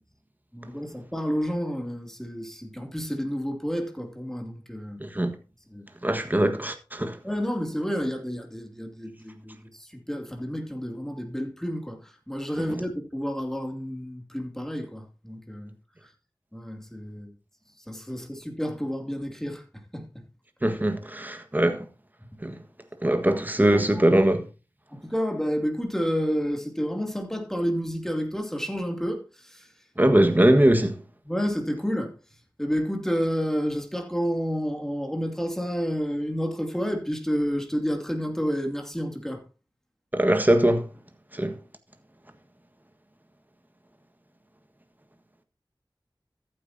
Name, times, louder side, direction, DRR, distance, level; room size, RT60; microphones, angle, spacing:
voice 1, 0.5-5.0 5.7-5.9 7.2-15.7 16.0-16.1 16.5-17.3 17.8-20.3 22.5-22.6 23.3-23.4 23.7-24.1 24.9-29.7 31.2-32.1 32.6-39.4, equal, 5° left, 2.6 m, -30 dB
voice 2, 5.0-5.3 6.0-7.2 20.6-21.8 22.4-22.6 23.0-24.4 30.0-31.0 40.1-40.8 41.3-41.5, right 1 dB, 20° right, 1.5 m, -21 dB
14.0 x 9.0 x 2.8 m
wide cardioid pair, 55°, 8 cm